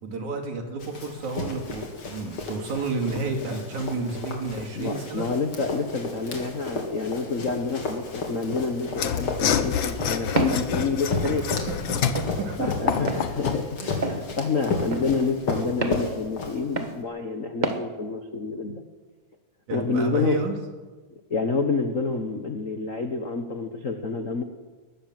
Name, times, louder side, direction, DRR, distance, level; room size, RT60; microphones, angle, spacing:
voice 1, 0.0-5.3 11.7-13.0 14.5-14.7 19.7-20.6, right 3 dB, 70° right, 4 dB, 3.9 m, -31 dB
Run, 0.8-17.0, left 3 dB, 45° left, 3.6 m, -33 dB
voice 2, 4.7-11.5 12.6-18.8 19.7-20.4 21.3-24.4, left 4 dB, 75° left, 6 dB, 0.7 m, -28 dB
Mechanisms / Sawing, 8.9-13.7, left 8 dB, 60° left, 1.3 m, -28 dB
Walk footsteps, 10.4-10.6 11.2-11.4 12.1-12.3 13.1-13.2 14.0-14.2 14.9-15.1 15.8-16.0 16.8-17.0 17.6-17.8, right 2 dB, 35° right, 0.7 m, -27 dB
21.0 x 18.0 x 7.7 m, 1.4 s
omnidirectional pair, 3.5 m